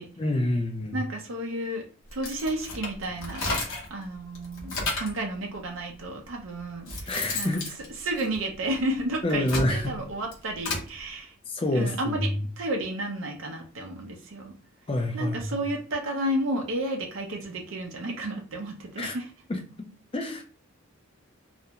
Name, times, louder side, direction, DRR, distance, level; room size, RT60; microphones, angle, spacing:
voice 1, 0.2-1.0 7.1-7.7 9.2-9.9 11.5-12.5 14.9-15.6 19.0-19.2 19.5-20.4, left 1 dB, 25° left, 3 dB, 0.4 m, -28 dB
voice 2, 0.9-1.8 2.1-3.6 3.9-7.5 8.0-11.3 11.7-12.3 12.6-14.5 15.1-19.3, right 1 dB, 65° right, 2 dB, 0.5 m, -32 dB
sound 1, 2.1-4.0 4.4-5.2 6.1-6.2 6.6-8.8 9.2-10.9, left 2 dB, 65° left, 0.8 m, -33 dB
2.4 x 2.1 x 2.8 m, 0.37 s
head